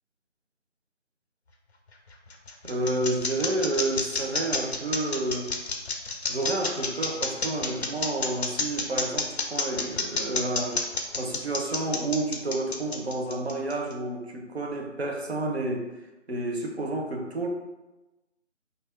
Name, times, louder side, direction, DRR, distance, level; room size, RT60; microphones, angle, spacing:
sound 1, 1.9-13.9, left 3 dB, 60° left, 0.5 m, -29 dB
voice 1, 2.6-5.5 6.3-10.8 11.2-15.9 16.3-17.5, right 2 dB, 60° right, 2 dB, 0.5 m, -30 dB
2.6 x 2.4 x 3.0 m, 1.1 s
figure-of-eight pair, 160°, 37 cm